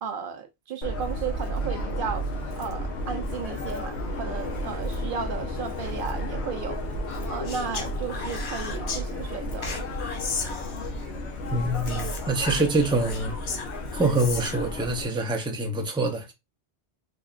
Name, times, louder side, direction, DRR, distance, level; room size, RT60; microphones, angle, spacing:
voice 1, 0.0-2.2 2.5-6.8 7.3-9.9, right 6 dB, 60° right, 0.7 m, -34 dB
Subway metro underground, 0.8-15.1, left 1 dB, 75° left, 1.2 m, -32 dB
Speech, 7.5-9.0 9.6-11.1 11.9-14.7, left 4 dB, 55° left, 0.9 m, -35 dB
voice 2, 11.5-13.4 13.9-16.3, right 2 dB, 5° right, 0.4 m, -25 dB
3.8 x 3.5 x 2.4 m
omnidirectional pair, 1.1 m